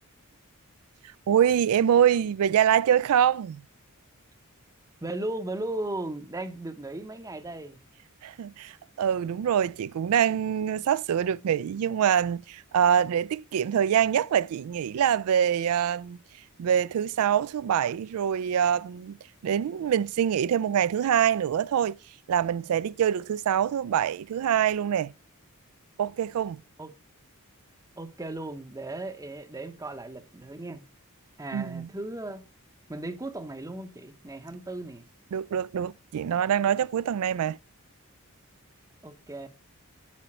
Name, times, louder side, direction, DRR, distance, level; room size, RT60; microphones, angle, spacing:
voice 1, 1.3-3.6 8.2-16.2 16.6-19.1 19.4-22.0 22.3-25.1 26.0-26.6 31.5-31.9 35.3-37.6, right 9 dB, 75° right, 0.3 m, -25 dB
voice 2, 5.0-7.8 26.8-26.9 28.0-30.8 31.4-32.4 32.9-35.0 39.0-39.5, right 2 dB, 15° right, 0.7 m, -36 dB
8.5 x 5.5 x 4.3 m
head